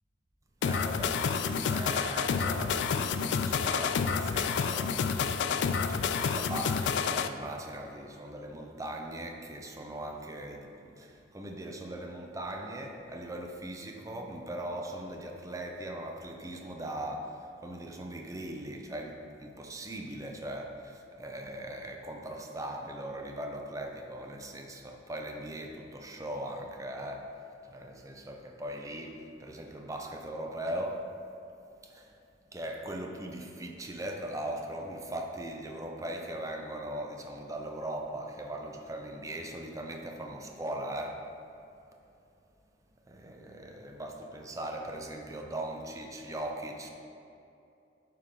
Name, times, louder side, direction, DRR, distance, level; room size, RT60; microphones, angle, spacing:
sound 1, 0.6-7.3, left 6 dB, 75° left, 0.3 m, -29 dB
voice 1, 0.6-27.3 27.7-31.0 31.8-32.1 32.5-41.2 43.1-46.9, right 1 dB, 20° right, 2 dB, 0.5 m, -39 dB
11.0 x 3.8 x 3.7 m, 2.7 s
head